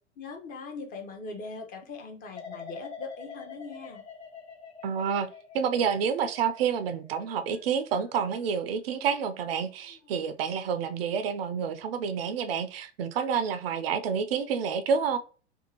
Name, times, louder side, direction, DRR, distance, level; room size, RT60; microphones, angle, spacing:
voice 1, 0.2-4.0, left 3 dB, 25° left, 3 dB, 0.6 m, -41 dB
sound 1, 2.3-9.3 9.7-10.1, left 6 dB, 70° left, 1.1 m, -47 dB
voice 2, 4.8-5.3 5.5-15.2, right 7 dB, 60° right, 10 dB, 0.4 m, -29 dB
2.6 x 2.3 x 2.8 m, 0.37 s
figure-of-eight pair, 90°, 34 cm